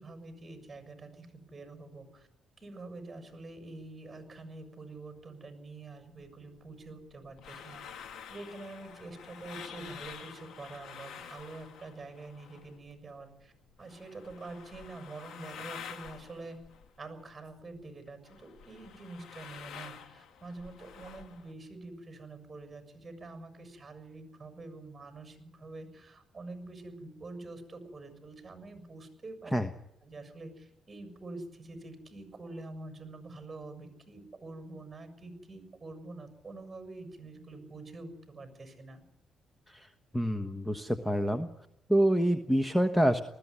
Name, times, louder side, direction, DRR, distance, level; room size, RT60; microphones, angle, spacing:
voice 1, 0.0-2.3 2.6-8.0 8.3-13.5 13.8-16.6 17.0-29.6 30.0-39.0, right 2 dB, 25° right, 7 dB, 6.8 m, -46 dB
sound 1, 6.2-12.9 13.2-17.8 18.1-21.5, left 7 dB, 75° left, 1.9 m, -48 dB
voice 2, 40.1-41.5 41.9-43.2, equal, 5° left, 7 dB, 1.2 m, -27 dB
20.0 x 15.5 x 9.8 m, 0.81 s
cardioid pair, 90°, 0 cm